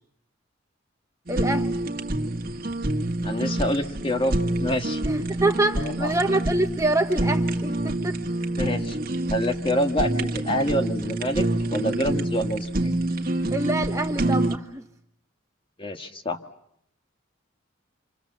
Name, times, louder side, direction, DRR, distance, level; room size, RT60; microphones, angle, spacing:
voice 1, 1.3-1.7 5.0-8.2 12.1-12.2 13.5-14.8, right 2 dB, 15° right, 4 dB, 1.1 m, -26 dB
Fire, 1.3-14.6, right 1 dB, 45° right, 1.6 m, -27 dB
voice 2, 3.2-5.0 5.8-6.1 8.6-9.0 9.3-12.9 15.8-16.4, equal, 25° left, 6 dB, 1.5 m, -27 dB
29.0 x 26.0 x 7.4 m, 0.74 s
head